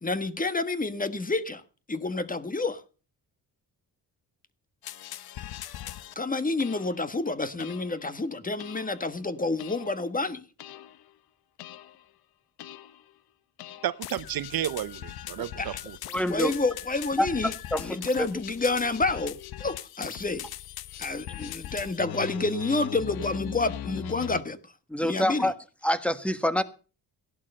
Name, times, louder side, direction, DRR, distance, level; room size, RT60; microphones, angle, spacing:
voice 1, 0.0-1.6 1.9-2.8 6.1-10.4 15.6-15.8 16.3-17.5 17.8-20.5 21.0-24.6 25.0-25.5, left 3 dB, 20° left, 1.4 m, -29 dB
sound 1, 4.8-6.1 6.6-7.1 7.6-8.0 8.6-9.0 9.6-10.1 10.6-11.1 11.6-12.0 12.6-13.0 13.6-24.4, left 11 dB, 75° left, 0.9 m, -40 dB
voice 2, 13.8-16.0, right 11 dB, 70° right, 0.8 m, -32 dB
voice 3, 16.1-16.5 17.2-17.3 17.7-18.3 24.9-25.5 25.8-26.6, equal, 5° left, 1.4 m, -26 dB
16.5 x 11.0 x 5.4 m
cardioid pair, 90°, 37 cm